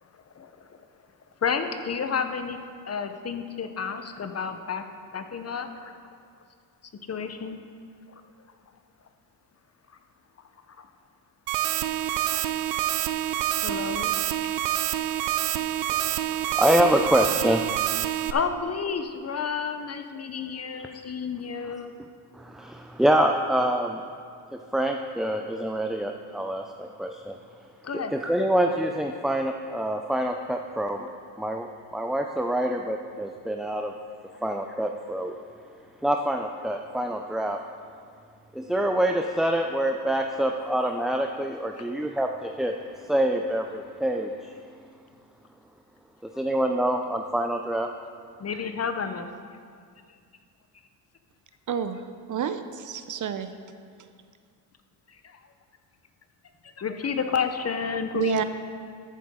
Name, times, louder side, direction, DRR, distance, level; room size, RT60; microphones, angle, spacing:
voice 1, 0.1-0.7 1.4-2.6 2.9-4.8 5.1-5.9 7.1-7.6 10.8-10.9 12.3-12.4 13.6-14.1 18.3-21.9 27.8-28.1 48.4-49.3 55.1-55.4 56.6-58.4, left 6 dB, 35° left, 8 dB, 0.9 m, -31 dB
sound 1, 11.5-18.3, right 12 dB, 90° right, 0.6 m, -27 dB
voice 2, 16.5-17.7 18.0-18.3 22.3-24.0 24.5-27.4 27.9-31.1 31.4-33.9 34.4-35.4 36.0-37.6 38.5-44.5 46.2-47.9, right 1 dB, ahead, 3 dB, 0.4 m, -26 dB
voice 3, 51.7-53.5 58.1-58.4, right 8 dB, 45° right, 10 dB, 0.7 m, -29 dB
14.0 x 8.3 x 3.7 m, 2.2 s
supercardioid pair, 75°, 44 cm